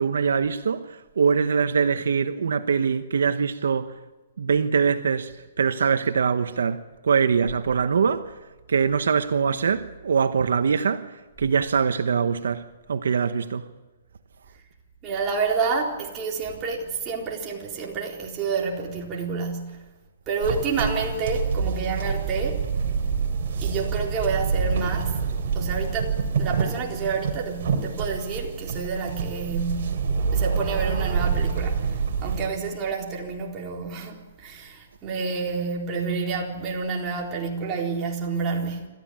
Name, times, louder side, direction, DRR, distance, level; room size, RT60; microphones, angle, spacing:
voice 1, 0.0-3.9 4.4-8.4 8.7-13.7, right 6 dB, 85° right, 1.1 m, -23 dB
voice 2, 15.0-19.8 20.3-22.6 23.6-25.2 25.6-38.9, right 4 dB, 20° right, 4.1 m, -29 dB
sound 1, 20.4-32.5, right 5 dB, 60° right, 3.7 m, -27 dB
27.0 x 14.0 x 8.8 m
hypercardioid pair, 155°, 0 cm